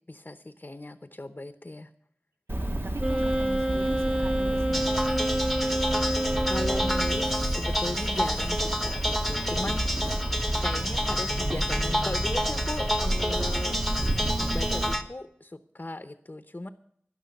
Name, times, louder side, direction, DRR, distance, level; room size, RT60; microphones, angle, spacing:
voice 1, 0.1-1.9 6.5-10.0 10.6-13.8 14.5-16.7, left 2 dB, 45° left, 9 dB, 0.9 m, -37 dB
Cricket, 2.5-14.9, right 1 dB, 55° right, 1.5 m, -30 dB
voice 2, 2.5-4.8, right 2 dB, 85° right, 3 dB, 1.8 m, -40 dB
Wind instrument woodwind instrument, 3.0-7.6, right 1 dB, 25° right, 1.4 m, -28 dB
sound 1, 4.7-15.0, equal, ahead, 1.3 m, -30 dB
12.5 x 11.0 x 6.6 m, 0.65 s
wide cardioid pair, 45°, 4 cm